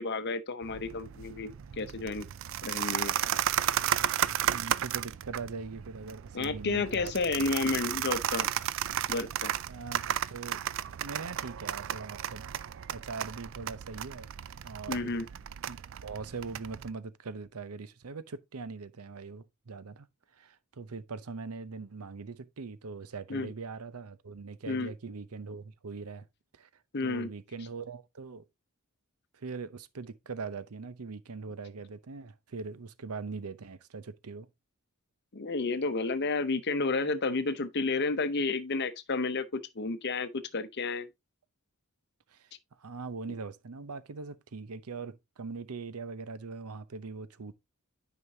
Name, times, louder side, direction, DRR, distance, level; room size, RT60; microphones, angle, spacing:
voice 1, 0.0-2.3 2.6-3.2 6.3-8.5 9.1-9.5 14.9-15.3 23.3-23.5 24.7-24.9 26.9-27.3 35.3-41.1, left 3 dB, 50° left, 0.8 m, -31 dB
sound 1, 0.6-16.9, right 10 dB, 60° right, 0.4 m, -34 dB
voice 2, 4.5-7.1 7.4-7.5 9.7-10.6 11.0-12.5 12.9-14.3 14.6-15.1 15.7-20.1 20.3-26.3 26.5-26.7 27.0-28.4 29.3-34.5 42.3-42.5 42.8-47.5, right 4 dB, 90° right, 0.7 m, -41 dB
9.6 x 5.2 x 2.8 m
head